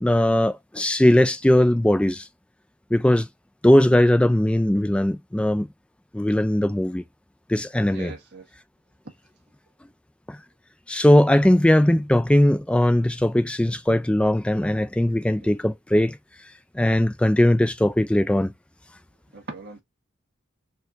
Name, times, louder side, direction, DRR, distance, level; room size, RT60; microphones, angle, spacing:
voice 1, 0.0-2.3 2.9-3.3 3.6-5.7 6.1-7.0 7.5-8.1 10.3-10.4 10.9-16.2 16.7-18.5, left 1 dB, 5° left, 0.3 m, -19 dB
voice 2, 7.9-8.4 15.4-15.5 19.3-19.8, right 4 dB, 55° right, 1.5 m, -39 dB
4.3 x 2.8 x 2.5 m
head